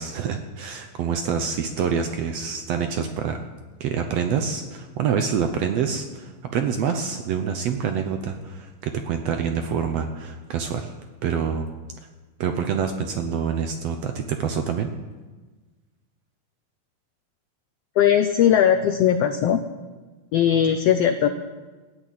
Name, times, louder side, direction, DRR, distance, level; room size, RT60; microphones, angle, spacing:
voice 1, 0.0-3.4 3.8-10.9 11.2-11.7 12.4-14.9, right 7 dB, 70° right, 6 dB, 1.6 m, -26 dB
voice 2, 18.0-19.6 20.3-21.3, left 9 dB, 85° left, 8 dB, 1.4 m, -19 dB
14.5 x 9.8 x 8.4 m, 1.3 s
omnidirectional pair, 3.7 m